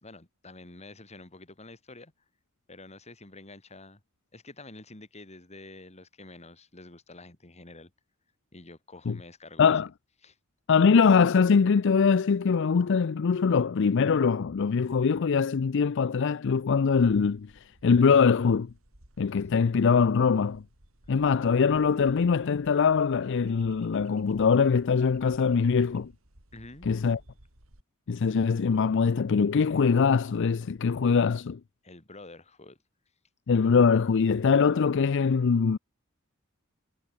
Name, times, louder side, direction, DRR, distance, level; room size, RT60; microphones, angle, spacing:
voice 1, 0.0-2.1 2.7-4.0 4.3-7.9 8.5-9.8 10.2-10.4 26.5-26.9 31.8-32.8, left 2 dB, 35° left, 2.9 m, -48 dB
voice 2, 10.7-17.5 17.8-18.7 19.2-20.6 21.1-26.1 26.9-27.2 28.1-31.6 33.5-35.8, left 5 dB, 60° left, 0.5 m, -22 dB
sound 1, 17.0-27.8, right 1 dB, 90° right, 4.4 m, -56 dB
head